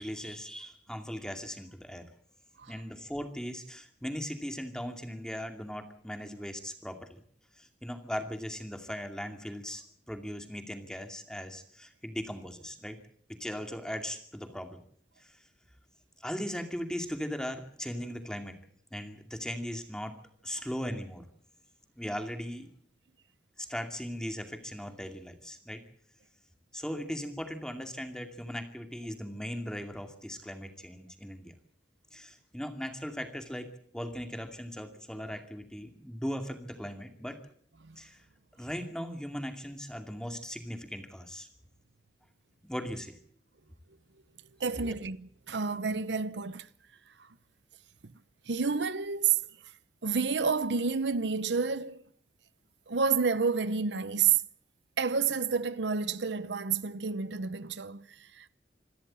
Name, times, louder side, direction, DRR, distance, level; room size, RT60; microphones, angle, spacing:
voice 1, 0.0-2.1 2.7-7.2 7.6-13.0 13.3-14.8 15.2-15.3 16.2-18.6 18.9-20.2 20.4-21.3 22.0-22.7 23.6-25.8 26.7-31.5 32.1-37.4 38.0-38.2 38.6-41.5 42.7-43.2 44.8-44.9, equal, 5° left, 2.4 m, -38 dB
voice 2, 44.6-46.7 48.5-49.4 50.0-52.0 52.9-54.4 55.0-58.5, right 5 dB, 85° right, 0.8 m, -29 dB
26.5 x 13.0 x 8.7 m
head